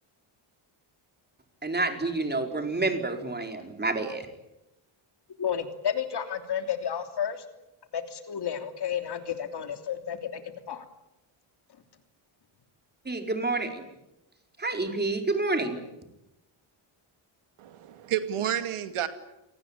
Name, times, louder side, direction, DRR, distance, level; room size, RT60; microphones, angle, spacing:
voice 1, 1.6-4.3 13.0-13.8 14.6-15.8, right 3 dB, 20° right, 5 dB, 4.7 m, -28 dB
voice 2, 5.4-7.4 7.9-10.4 10.7-10.8, left 8 dB, 50° left, 7 dB, 3.3 m, -31 dB
voice 3, 17.6-19.1, right 10 dB, 80° right, 9 dB, 2.5 m, -30 dB
28.5 x 19.5 x 10.0 m, 0.93 s
cardioid pair, 120°, 49 cm